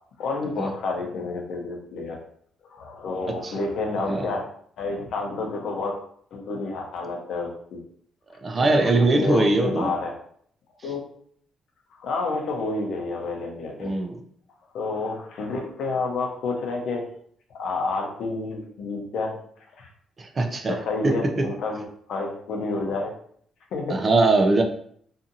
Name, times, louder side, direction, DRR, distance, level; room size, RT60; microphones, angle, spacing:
voice 1, 0.2-2.2 2.7-4.4 4.8-6.0 6.3-7.8 8.6-8.9 9.2-10.1 10.8-11.0 12.0-13.9 14.7-17.0 17.6-19.3 19.8-19.9 20.6-23.1 23.7-24.0, left 3 dB, 70° left, 1 dB, 0.7 m, -29 dB
voice 2, 8.4-9.9 13.8-14.2 20.2-20.8 21.0-21.4 23.9-24.6, right 2 dB, 35° right, 5 dB, 0.4 m, -21 dB
2.7 x 2.5 x 2.6 m, 0.62 s
cardioid pair, 90°, 0 cm